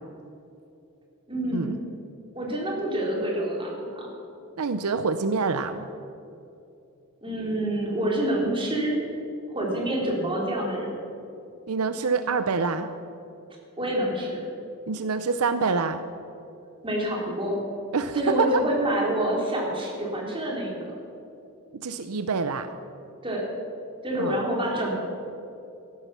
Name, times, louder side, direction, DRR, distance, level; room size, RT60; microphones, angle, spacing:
voice 1, 1.3-1.8 2.3-4.1 7.2-9.0 9.5-11.0 13.8-14.4 16.8-17.6 18.1-21.0 23.2-23.4 24.0-25.0, right 1 dB, 25° right, -2 dB, 3.4 m, -27 dB
voice 2, 4.6-5.9 11.7-12.9 14.9-16.0 17.9-18.5 21.7-22.7 24.2-24.4, right 4 dB, 80° right, 10 dB, 0.6 m, -26 dB
14.0 x 12.5 x 6.0 m, 2.7 s
head